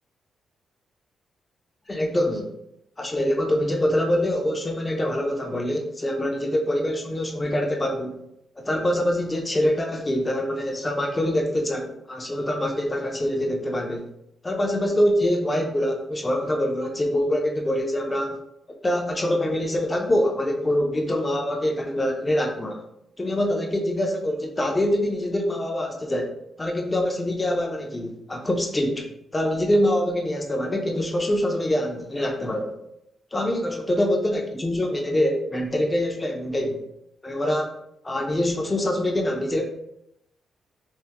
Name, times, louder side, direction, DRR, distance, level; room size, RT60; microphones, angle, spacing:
voice 1, 1.9-2.5 3.0-8.2 8.6-14.1 14.4-18.4 18.8-22.8 23.2-26.3 26.6-29.1 29.3-32.7 33.3-36.9 37.2-37.7 38.0-39.6, left 1 dB, 20° left, 2 dB, 0.4 m, -24 dB
3.3 x 2.0 x 2.8 m, 0.81 s
cardioid pair, 105°, 0 cm